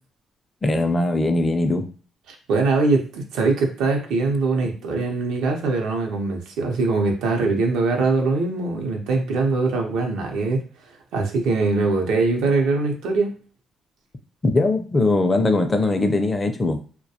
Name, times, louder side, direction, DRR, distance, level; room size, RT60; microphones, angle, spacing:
voice 1, 0.6-1.8 14.4-16.8, left 2 dB, 25° left, 6 dB, 0.4 m, -20 dB
voice 2, 2.3-13.3, right 3 dB, 90° right, 2 dB, 0.6 m, -22 dB
2.3 x 2.1 x 2.8 m, 0.39 s
cardioid pair, 90°, 0 cm